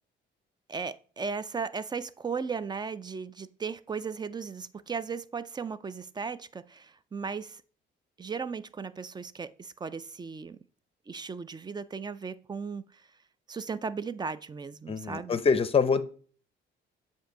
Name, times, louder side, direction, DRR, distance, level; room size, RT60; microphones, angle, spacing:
voice 1, 0.7-7.6 8.2-10.6 11.1-13.0 13.5-15.4, right 5 dB, 20° right, 0.3 m, -36 dB
voice 2, 14.9-16.0, left 5 dB, 30° left, 0.6 m, -25 dB
7.8 x 2.7 x 5.0 m
cardioid pair, 90°, 20 cm